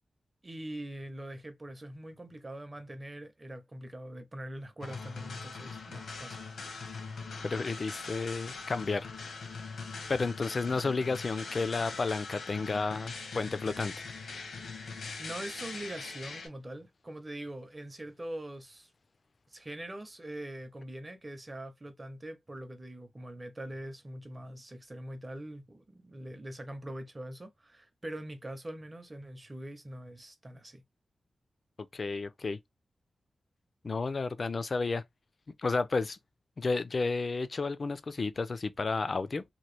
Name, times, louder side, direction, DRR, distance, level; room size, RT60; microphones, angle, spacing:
voice 1, 0.4-6.4 14.9-18.9 19.5-30.8, right 1 dB, 25° right, 0.7 m, -43 dB
sound 1, 4.8-16.5, left 4 dB, 90° left, 0.9 m, -42 dB
voice 2, 7.4-9.1 10.1-14.1 31.9-32.6 33.8-35.0 35.6-36.2 36.6-39.4, left 4 dB, 45° left, 0.4 m, -32 dB
2.9 x 2.2 x 3.2 m
wide cardioid pair, 115°, 0 cm